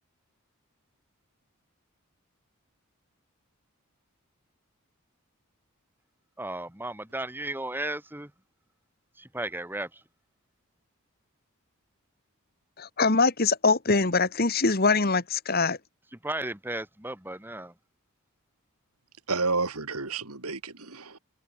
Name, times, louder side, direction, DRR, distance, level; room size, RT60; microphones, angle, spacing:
voice 1, 6.4-8.3 9.2-10.0 16.2-17.7, right 1 dB, 10° right, 2.1 m, -34 dB
voice 2, 12.8-15.8, left 4 dB, 45° left, 1.7 m, -23 dB
voice 3, 19.3-21.2, right 3 dB, 85° right, 3.4 m, -30 dB
open air
head